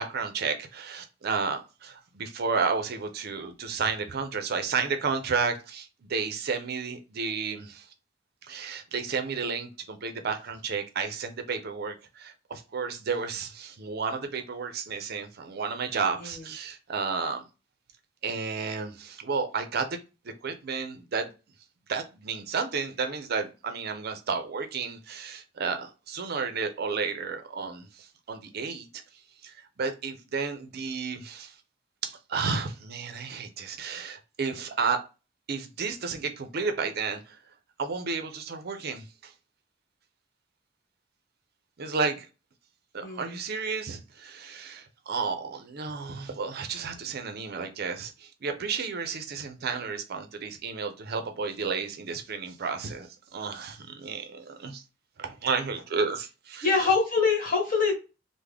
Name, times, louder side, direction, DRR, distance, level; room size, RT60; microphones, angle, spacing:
voice 1, 0.0-7.8 8.5-17.4 18.2-19.9 20.4-21.3 21.9-27.8 28.3-28.9 29.4-31.5 32.0-35.0 35.5-37.4 37.8-39.3 41.8-42.3 42.9-53.1 53.3-54.8 55.2-56.7, right 5 dB, 55° right, 0.5 m, -32 dB
voice 2, 43.0-43.4 56.6-57.9, left 4 dB, 45° left, 1.3 m, -24 dB
3.5 x 2.1 x 3.3 m
head